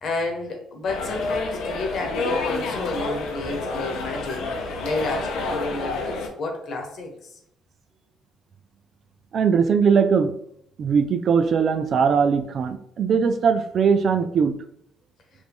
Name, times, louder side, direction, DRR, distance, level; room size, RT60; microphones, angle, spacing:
voice 1, 0.0-7.4, left 3 dB, 55° left, 3 dB, 1.1 m, -30 dB
sound 1, 0.9-6.3, left 3 dB, 80° left, 0.8 m, -29 dB
voice 2, 9.3-10.3 10.8-14.5, right 6 dB, 55° right, 9 dB, 0.4 m, -20 dB
4.8 x 2.6 x 3.6 m, 0.71 s
cardioid pair, 95°, 0 cm